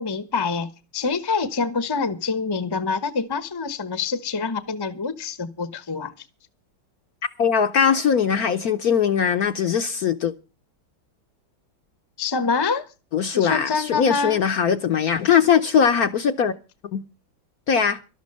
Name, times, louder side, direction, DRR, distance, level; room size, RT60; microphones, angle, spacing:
voice 1, 0.0-6.1 12.2-12.8 13.3-14.4, left 4 dB, 20° left, 0.7 m, -26 dB
voice 2, 7.4-10.3 13.1-16.5 16.9-17.0 17.7-18.0, left 7 dB, 60° left, 1.1 m, -20 dB
12.5 x 12.5 x 5.4 m
omnidirectional pair, 2.2 m